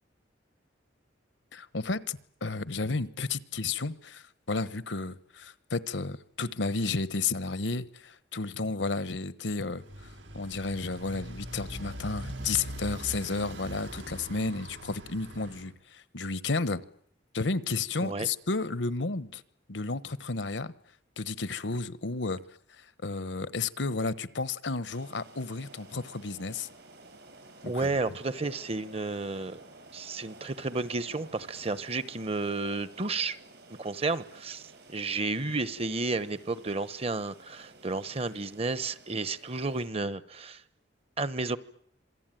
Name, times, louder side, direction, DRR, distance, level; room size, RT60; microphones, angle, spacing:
voice 1, 1.5-9.8 10.3-16.8 17.3-19.4 19.7-20.7 21.2-22.4 23.0-26.7 27.6-27.9, left 3 dB, 80° left, 16 dB, 1.1 m, -32 dB
Motorcycle, 9.7-15.7, right 1 dB, 85° right, 4.3 m, -42 dB
sound 1, 24.8-39.9, right 2 dB, 65° right, 5.4 m, -53 dB
voice 2, 27.6-29.6 29.9-33.4 33.8-40.6 41.2-41.6, right 3 dB, 35° right, 15 dB, 1.0 m, -32 dB
26.5 x 19.5 x 9.2 m, 0.65 s
head